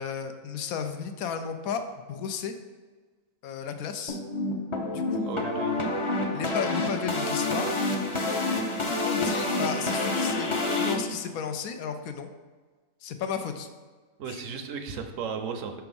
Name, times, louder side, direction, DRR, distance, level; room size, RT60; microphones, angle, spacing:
voice 1, 0.0-2.5 3.4-4.2 4.9-5.4 6.3-7.7 8.9-12.3 13.0-13.7 14.3-14.4, left 7 dB, 80° left, 7 dB, 1.0 m, -34 dB
sound 1, 4.1-10.9, left 2 dB, 35° left, 0.5 m, -28 dB
voice 2, 5.3-5.7 14.2-15.7, right 6 dB, 70° right, 6 dB, 0.9 m, -35 dB
5.8 x 3.4 x 5.3 m, 1.4 s
omnidirectional pair, 1.5 m